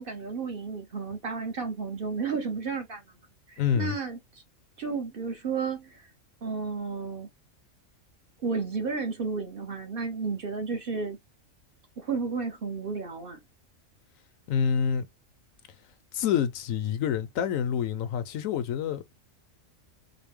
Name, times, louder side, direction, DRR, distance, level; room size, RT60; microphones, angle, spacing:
voice 1, 0.0-3.0 3.5-4.4 4.8-6.1 6.4-7.3 8.4-11.2 12.0-13.4, right 5 dB, 45° right, 1.0 m, -32 dB
voice 2, 3.6-4.0 14.5-15.0 16.1-19.1, left 8 dB, 80° left, 1.1 m, -27 dB
4.0 x 2.1 x 3.6 m
omnidirectional pair, 1.4 m